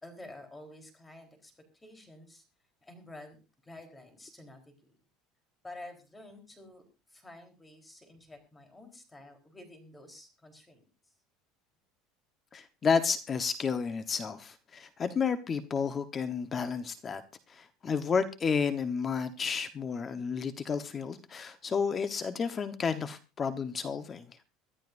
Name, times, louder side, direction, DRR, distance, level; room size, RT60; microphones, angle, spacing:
voice 1, 0.0-2.4 2.8-3.4 3.6-4.9 5.6-10.9, left 1 dB, 10° left, 5 dB, 3.8 m, -50 dB
voice 2, 12.5-17.2 17.5-24.2, left 6 dB, 25° left, 10 dB, 1.1 m, -31 dB
23.5 x 13.0 x 2.6 m, 0.29 s
cardioid pair, 130°, 0 cm